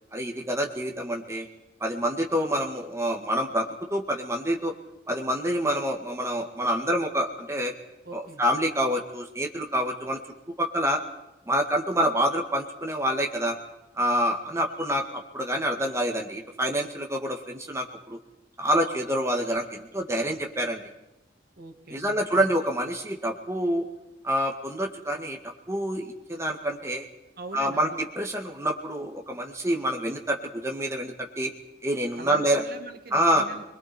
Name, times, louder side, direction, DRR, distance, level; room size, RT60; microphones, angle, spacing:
voice 1, 0.1-1.5 1.8-4.7 5.1-7.7 8.1-10.2 10.6-11.0 11.5-13.6 14.0-18.2 18.6-20.8 21.9-23.8 24.2-25.4 25.7-27.1 27.5-31.5 31.8-32.6 33.1-33.4, equal, 15° right, 1 dB, 1.9 m, -27 dB
voice 2, 8.1-8.4 21.6-22.5 27.4-28.0 32.2-33.7, right 2 dB, 55° right, 4 dB, 2.1 m, -42 dB
29.5 x 21.5 x 4.4 m, 0.91 s
head